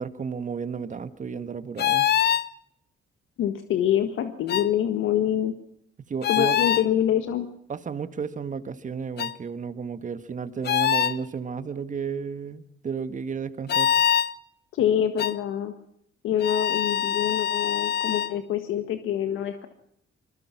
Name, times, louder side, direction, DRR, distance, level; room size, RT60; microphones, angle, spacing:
voice 1, 0.0-2.1 6.0-6.6 7.7-13.9, right 6 dB, 40° right, 12 dB, 1.7 m, -33 dB
sound 1, 1.8-2.5 4.5-4.7 6.2-6.9 9.2-9.3 10.6-11.2 13.7-14.3 15.2-15.4 16.4-18.3, left 9 dB, 55° left, 0.9 m, -24 dB
voice 2, 3.4-5.5 6.3-7.5 14.7-15.7 16.2-19.7, left 10 dB, 85° left, 8 dB, 1.6 m, -25 dB
25.5 x 21.5 x 6.0 m, 0.70 s
cardioid pair, 90°, 20 cm